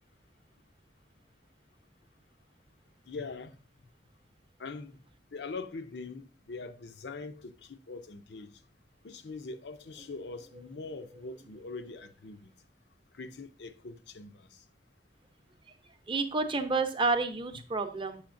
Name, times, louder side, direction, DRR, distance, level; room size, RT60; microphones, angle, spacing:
voice 1, 3.1-3.6 4.6-5.0 5.3-8.5 9.0-12.5 13.1-14.5, left 3 dB, 70° left, 0.6 m, -42 dB
voice 2, 16.1-18.2, right 3 dB, 30° right, 0.7 m, -29 dB
7.1 x 6.3 x 2.6 m
head